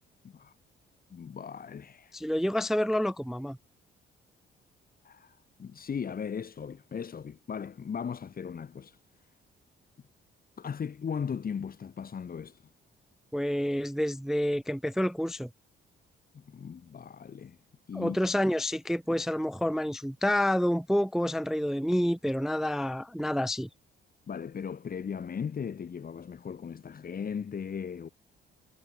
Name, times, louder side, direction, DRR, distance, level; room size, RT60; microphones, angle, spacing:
voice 1, 1.1-2.2 5.0-9.0 10.6-12.6 16.3-17.6 17.9-18.2 24.3-28.1, left 7 dB, 45° left, 7.0 m, -37 dB
voice 2, 2.1-3.6 13.3-15.5 17.9-23.7, equal, ahead, 0.3 m, -28 dB
cardioid pair, 90°, 20 cm